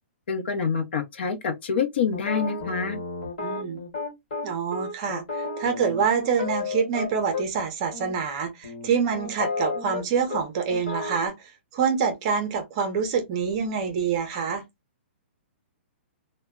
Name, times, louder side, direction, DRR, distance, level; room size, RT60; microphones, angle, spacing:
voice 1, 0.3-3.0, left 6 dB, 60° left, 0.7 m, -26 dB
sound 1, 2.1-7.4 7.9-8.1 8.6-10.0 10.3-10.4 10.7-11.3, left 4 dB, 45° left, 1.3 m, -32 dB
voice 2, 3.4-3.8 4.4-14.6, right 6 dB, 30° right, 0.6 m, -26 dB
2.1 x 2.1 x 3.5 m
hypercardioid pair, 170°, 7 cm